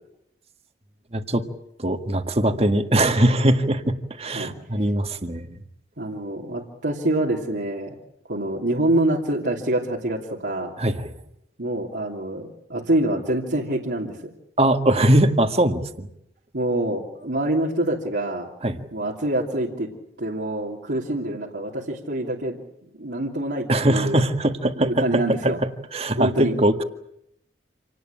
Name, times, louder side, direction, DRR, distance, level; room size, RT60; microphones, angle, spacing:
voice 1, 1.1-1.5 1.8-5.6 10.8-11.1 14.6-16.1 18.6-18.9 23.7-25.5 25.9-26.8, right 1 dB, 35° right, 7 dB, 1.8 m, -21 dB
voice 2, 4.2-4.6 6.0-8.0 8.3-10.7 11.6-14.2 16.5-18.5 18.9-19.9 20.2-22.6 22.9-24.2 24.8-25.6 26.1-26.5, right 1 dB, 75° right, -3 dB, 3.0 m, -25 dB
27.5 x 19.0 x 9.0 m, 0.79 s
head